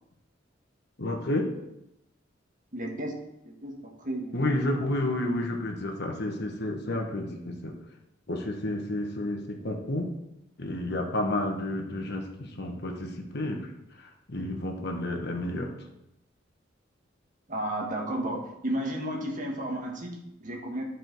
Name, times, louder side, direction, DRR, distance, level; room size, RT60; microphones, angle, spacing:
voice 1, 1.0-1.5 4.3-7.8 8.3-10.1 10.6-13.7 14.0-15.7, left 1 dB, 55° left, 2 dB, 1.4 m, -31 dB
voice 2, 2.7-3.1 3.4-4.9 17.5-20.8, right 1 dB, 40° right, 0 dB, 1.6 m, -33 dB
11.5 x 5.0 x 4.7 m, 0.85 s
head